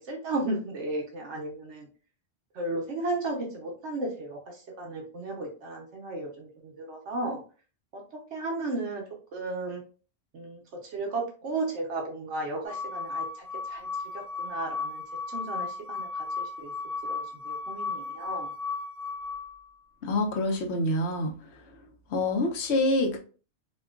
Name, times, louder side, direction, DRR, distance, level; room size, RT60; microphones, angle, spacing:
voice 1, 0.1-1.9 2.5-7.4 7.9-8.0 8.3-9.0 9.3-9.8 10.3-13.3 13.6-13.9 14.1-15.0 15.3-16.7 17.0-18.5, right 2 dB, 85° right, 0 dB, 1.1 m, -34 dB
sound 1, 12.7-19.7, left 4 dB, 55° right, 1.3 m, -35 dB
voice 2, 20.0-21.3 22.1-23.2, left 2 dB, 75° left, 3 dB, 1.0 m, -26 dB
4.3 x 2.2 x 2.4 m, 0.38 s
omnidirectional pair, 1.2 m